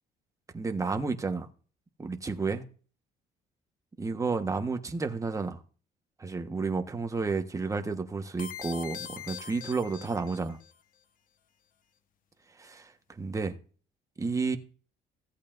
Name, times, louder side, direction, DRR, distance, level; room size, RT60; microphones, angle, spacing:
voice 1, 0.5-1.5 2.0-2.6 4.0-5.6 6.2-10.6 12.6-13.5 14.2-14.6, right 4 dB, 20° right, 1.3 m, -31 dB
sound 1, 8.4-10.7, left 8 dB, 55° left, 1.0 m, -42 dB
16.5 x 8.3 x 2.6 m
cardioid pair, 110°, 17 cm